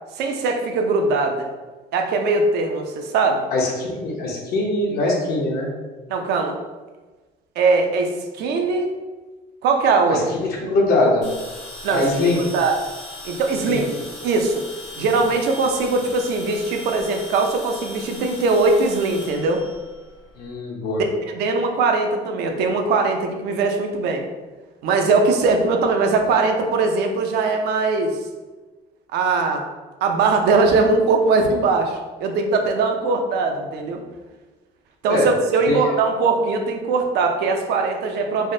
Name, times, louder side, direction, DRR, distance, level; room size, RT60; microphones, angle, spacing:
voice 1, 0.2-1.5 1.9-3.5 6.1-6.6 7.6-8.9 9.6-10.2 11.8-12.0 12.5-12.7 13.2-13.9 14.2-14.6 15.0-19.6 21.3-24.2 24.8-28.2 29.1-29.6 30.0-34.0 35.0-38.5, right 3 dB, 75° right, 4 dB, 0.4 m, -20 dB
voice 2, 3.5-5.7 10.1-11.3 11.9-12.5 13.6-13.8 20.4-21.0 35.1-35.3 35.7-35.8, left 2 dB, 70° left, -1 dB, 0.8 m, -22 dB
sound 1, 11.2-20.5, left 2 dB, 85° left, 1.2 m, -38 dB
3.4 x 2.1 x 2.6 m, 1.3 s
cardioid pair, 110°, 17 cm